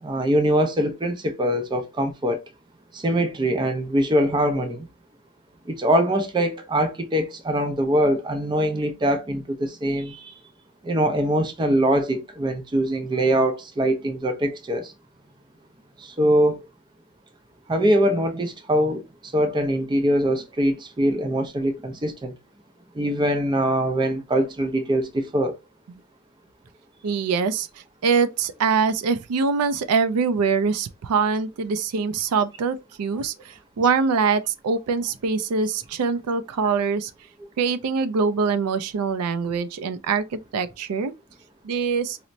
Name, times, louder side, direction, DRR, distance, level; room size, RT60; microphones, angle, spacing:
voice 1, 0.0-2.4 2.9-4.9 5.7-10.3 10.8-14.9 16.0-16.7 17.7-22.3 23.0-25.6, right 1 dB, 20° right, 0.4 m, -23 dB
voice 2, 27.0-27.7 28.0-37.1 37.6-41.1 41.6-42.2, right 5 dB, 85° right, 0.4 m, -23 dB
4.2 x 2.0 x 2.5 m
head